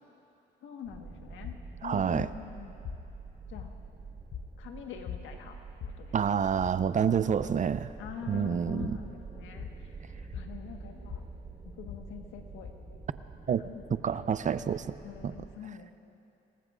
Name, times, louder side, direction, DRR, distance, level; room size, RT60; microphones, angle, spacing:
voice 1, 0.6-1.6 1.8-2.8 3.5-3.8 4.6-6.2 8.0-11.2 11.8-12.7 13.5-14.0 14.7-16.1, left 8 dB, 85° left, 3 dB, 1.4 m, -45 dB
sound 1, 0.8-15.5, right 5 dB, 20° right, 4.0 m, -47 dB
sound 2, 1.4-13.4, left 10 dB, 55° left, 0.6 m, -46 dB
voice 2, 1.8-2.3 6.1-7.9 8.3-9.0 13.5-13.6 14.0-14.9 15.2-15.3, right 7 dB, 40° right, 14 dB, 0.5 m, -28 dB
27.0 x 20.0 x 2.5 m, 2.8 s
cardioid pair, 90°, 20 cm